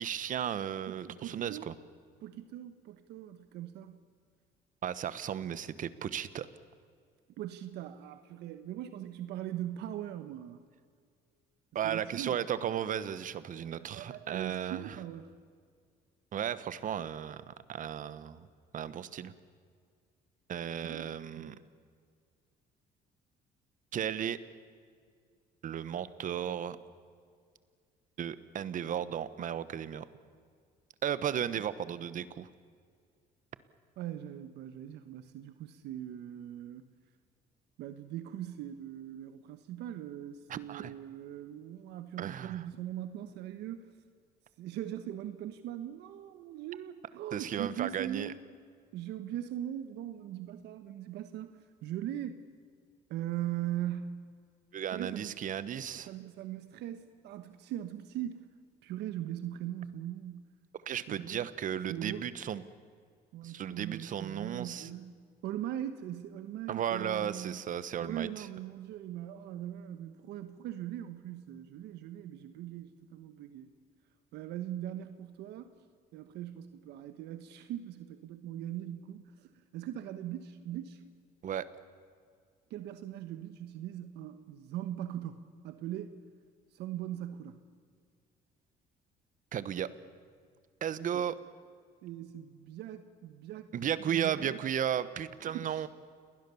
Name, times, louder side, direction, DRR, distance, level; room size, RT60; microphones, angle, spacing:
voice 1, 0.0-1.7 4.8-6.5 11.7-14.8 16.3-18.5 18.7-19.3 20.5-21.6 23.9-24.4 25.6-26.8 28.2-30.1 31.0-32.5 40.5-40.9 42.2-42.6 47.3-48.3 54.7-56.1 60.9-62.6 63.4-64.9 66.7-68.5 81.4-81.7 89.5-89.9 90.8-91.3 93.7-95.9, right 9 dB, 50° right, 15 dB, 1.2 m, -35 dB
voice 2, 0.9-1.7 2.2-4.0 7.4-10.6 11.8-12.4 13.6-15.3 20.8-21.1 21.4-21.5 34.0-36.9 37.8-43.9 44.6-48.4 48.9-52.4 53.1-54.2 54.9-55.4 55.9-58.5 58.8-60.4 61.1-61.5 61.9-62.3 63.3-65.1 65.4-67.6 68.0-73.7 74.3-75.8 76.1-81.0 82.7-86.2 86.7-87.6 91.1-91.2 92.0-93.7 94.0-94.6 95.4-95.9, right 11 dB, 80° right, 10 dB, 1.3 m, -40 dB
29.0 x 20.0 x 7.1 m, 2.1 s
cardioid pair, 110°, 17 cm